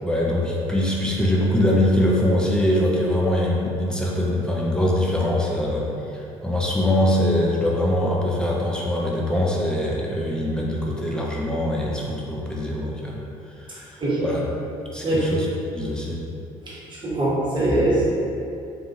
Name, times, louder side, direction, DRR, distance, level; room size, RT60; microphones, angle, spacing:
voice 1, 0.0-5.9 6.1-13.2 13.7-14.4 14.9-15.5 15.7-16.2, left 1 dB, 5° left, -4 dB, 0.6 m, -23 dB
voice 2, 16.7-18.1, right 1 dB, 25° right, -8 dB, 1.1 m, -22 dB
2.6 x 2.6 x 2.8 m, 2.7 s
figure-of-eight pair, 50°, 18 cm